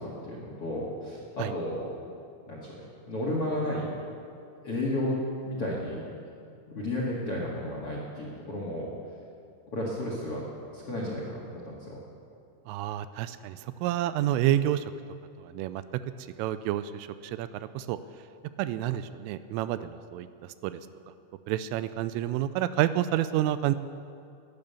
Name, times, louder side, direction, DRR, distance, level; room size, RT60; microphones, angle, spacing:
voice 1, 0.0-1.9 2.5-3.9 4.6-5.2 5.4-6.0 6.7-8.9 9.7-10.5 10.7-12.0, left 1 dB, 50° left, -3 dB, 1.8 m, -33 dB
voice 2, 12.7-14.8 15.4-16.0 16.4-17.5 17.7-18.0 18.6-20.3 20.6-20.8 21.5-23.8, right 13 dB, 85° right, 13 dB, 3.1 m, -29 dB
19.0 x 10.5 x 6.9 m, 2.4 s
omnidirectional pair, 5.8 m